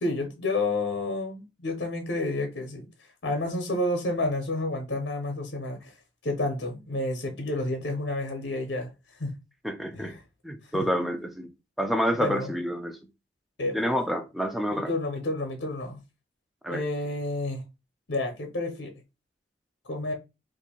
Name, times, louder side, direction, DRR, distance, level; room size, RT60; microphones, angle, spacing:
voice 1, 0.0-2.9 3.2-5.9 6.2-8.9 9.2-9.3 9.9-10.2 10.6-10.9 12.2-12.6 13.6-13.8 14.7-16.0 16.7-17.6 18.1-18.9 19.8-20.1, left 2 dB, 65° left, 0.8 m, -30 dB
voice 2, 9.6-10.1 10.4-11.5 11.8-13.0 13.7-14.9 16.6-16.8, equal, ahead, 0.4 m, -28 dB
2.7 x 2.5 x 4.2 m
head